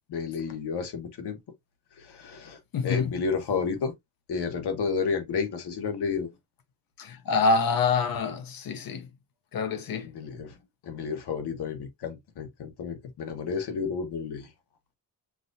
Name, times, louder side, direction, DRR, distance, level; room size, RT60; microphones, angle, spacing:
voice 1, 0.1-1.4 2.0-3.9 4.3-6.3 10.0-10.5 10.8-14.5, left 5 dB, 85° left, 1.4 m, -31 dB
voice 2, 2.7-3.1 7.0-9.1 9.5-10.1, left 4 dB, 60° left, 0.9 m, -26 dB
6.0 x 2.6 x 2.6 m
wide cardioid pair, 130°, 39 cm